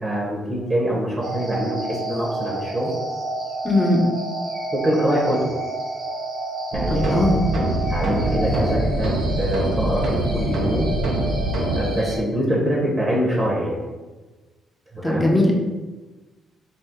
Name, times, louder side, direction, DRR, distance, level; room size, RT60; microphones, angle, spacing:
voice 1, 0.0-2.9 4.7-5.5 6.7-7.2 7.9-10.9 11.7-13.8 14.9-15.3, equal, 25° right, -3 dB, 1.0 m, -24 dB
sound 1, 1.2-12.2, right 1 dB, 55° right, 1.1 m, -30 dB
voice 2, 3.6-4.0 6.9-7.5 15.0-15.5, left 1 dB, 10° left, -1 dB, 0.8 m, -19 dB
sound 2, 6.7-11.8, right 1 dB, 70° right, 0.7 m, -24 dB
4.3 x 2.3 x 3.7 m, 1.2 s
cardioid pair, 90°, 0 cm